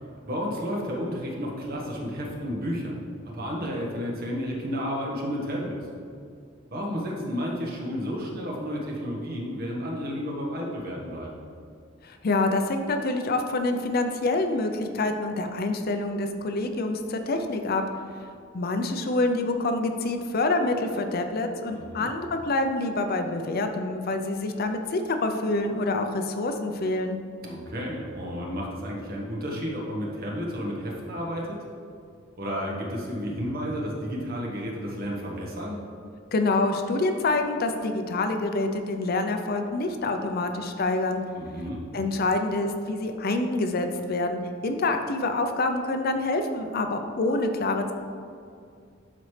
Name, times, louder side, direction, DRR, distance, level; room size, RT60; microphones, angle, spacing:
voice 1, 0.3-3.0 3.2-5.8 6.7-11.3 21.7-22.1 27.4-31.6 32.4-35.8 41.4-41.8, equal, 50° right, -2 dB, 1.4 m, -32 dB
voice 2, 12.0-17.8 18.5-27.2 36.3-41.2 41.9-47.9, left 2 dB, 50° left, 6 dB, 0.5 m, -26 dB
11.5 x 4.1 x 3.2 m, 2.3 s
head